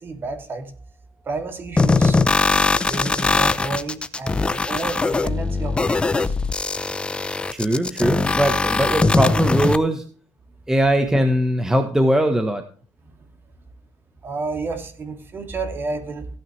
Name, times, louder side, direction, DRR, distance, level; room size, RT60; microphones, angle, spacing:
voice 1, 0.0-0.7 1.2-2.2 2.8-6.3 13.0-13.2 14.2-16.3, right 3 dB, 30° right, 7 dB, 2.5 m, -31 dB
sound 1, 1.8-9.8, left 3 dB, 15° left, 0.7 m, -21 dB
voice 2, 7.5-10.0 10.7-12.6, equal, 5° right, 7 dB, 1.2 m, -20 dB
16.0 x 9.1 x 3.2 m, 0.42 s
cardioid pair, 125°, 7 cm